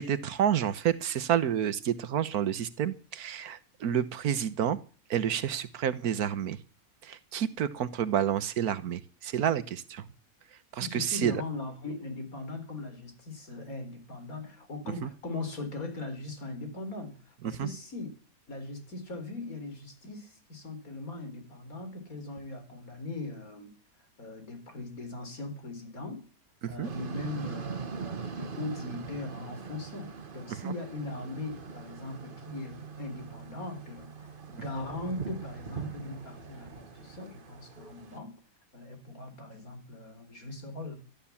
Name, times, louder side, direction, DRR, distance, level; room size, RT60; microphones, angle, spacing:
voice 1, 0.0-4.8 5.1-6.6 7.0-10.1 10.7-11.4 15.0-15.1 17.4-17.7 26.6-26.9 30.5-30.7, right 9 dB, 80° right, 15 dB, 1.5 m, -29 dB
voice 2, 10.8-18.1 18.5-23.7 24.2-26.3 26.7-38.4 38.7-41.0, left 2 dB, 65° left, 7 dB, 4.4 m, -40 dB
sound 1, 26.8-38.2, right 5 dB, 40° right, 1.2 m, -42 dB
13.0 x 12.0 x 7.1 m, 0.38 s
omnidirectional pair, 1.6 m